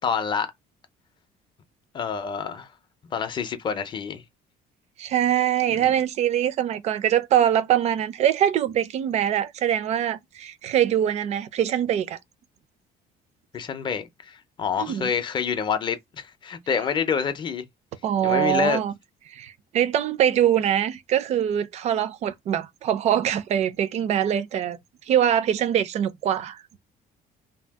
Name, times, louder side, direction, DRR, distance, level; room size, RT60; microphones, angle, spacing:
voice 1, 0.0-0.5 1.9-2.7 3.0-4.2 5.7-5.9 13.5-17.7 18.2-18.8, left 6 dB, 30° left, 0.5 m, -27 dB
voice 2, 5.0-12.2 14.8-15.1 18.0-18.9 19.3-24.8 25.1-26.6, right 10 dB, 40° right, 0.4 m, -23 dB
2.7 x 2.3 x 3.4 m
cardioid pair, 175°, 17 cm